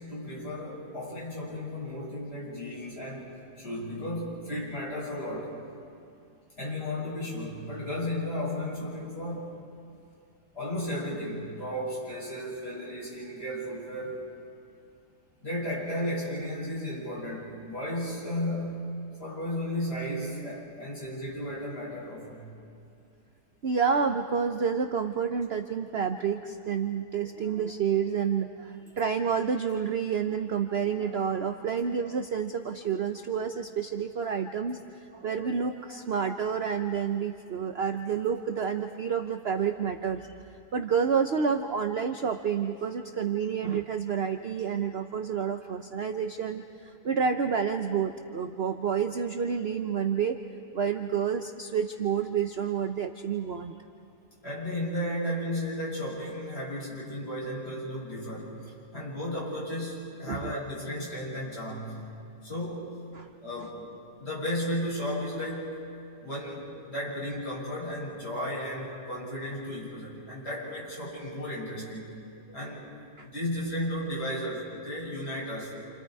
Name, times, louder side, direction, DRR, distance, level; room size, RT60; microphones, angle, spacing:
voice 1, 0.0-5.5 6.6-9.6 10.5-14.2 15.4-18.9 19.2-22.5 54.4-62.0 62.4-62.9 63.4-63.8 64.2-65.8 66.2-72.2 72.5-72.8 73.2-75.7, left 1 dB, 35° left, -7 dB, 7.6 m, -34 dB
voice 2, 23.6-40.3 40.7-50.4 50.7-53.7 60.3-60.6 63.1-63.3 73.2-73.3, right 6 dB, 50° right, 6 dB, 0.7 m, -29 dB
29.5 x 28.5 x 4.8 m, 2.5 s
omnidirectional pair, 1.9 m